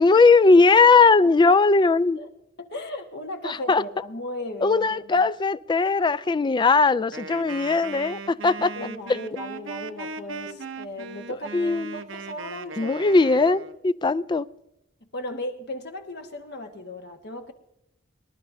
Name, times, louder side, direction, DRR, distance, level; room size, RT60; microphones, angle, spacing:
voice 1, 0.0-2.2 3.4-3.8 4.6-8.7 11.5-11.9 12.8-14.5, left 4 dB, 25° left, 0.3 m, -19 dB
voice 2, 2.6-5.3 8.7-13.1 15.1-17.5, left 1 dB, 60° left, 1.5 m, -36 dB
Wind instrument woodwind instrument, 7.1-13.8, right 4 dB, 85° right, 0.8 m, -38 dB
24.5 x 12.0 x 2.7 m
head